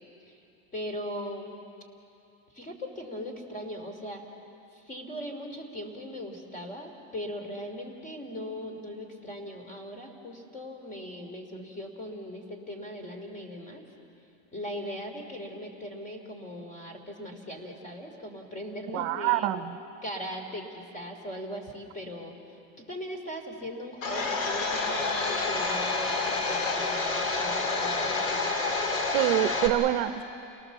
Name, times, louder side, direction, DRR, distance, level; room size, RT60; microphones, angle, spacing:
voice 1, 0.7-1.5 2.5-4.2 4.7-13.8 14.5-19.6 20.0-22.3 22.8-28.6, equal, 20° left, 4 dB, 3.3 m, -39 dB
voice 2, 18.9-19.8 29.1-30.2, right 15 dB, 55° right, 11 dB, 0.8 m, -26 dB
Domestic sounds home sounds, 24.0-29.7, left 3 dB, 80° left, 3.6 m, -28 dB
29.5 x 18.5 x 7.2 m, 2.8 s
supercardioid pair, 145°, 39 cm